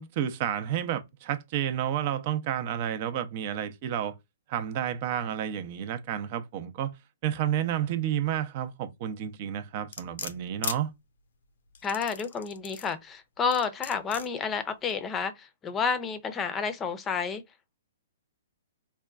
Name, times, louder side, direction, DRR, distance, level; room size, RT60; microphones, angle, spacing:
voice 1, 0.0-4.2 4.5-7.0 7.2-10.9, right 10 dB, 45° right, 0.6 m, -30 dB
sound 1, 9.9-10.8 11.7-12.9 13.5-14.3 14.9-15.0, left 6 dB, 75° left, 0.6 m, -37 dB
voice 2, 11.8-17.4, left 5 dB, 20° left, 0.6 m, -30 dB
4.3 x 2.2 x 2.4 m
hypercardioid pair, 135°, 0 cm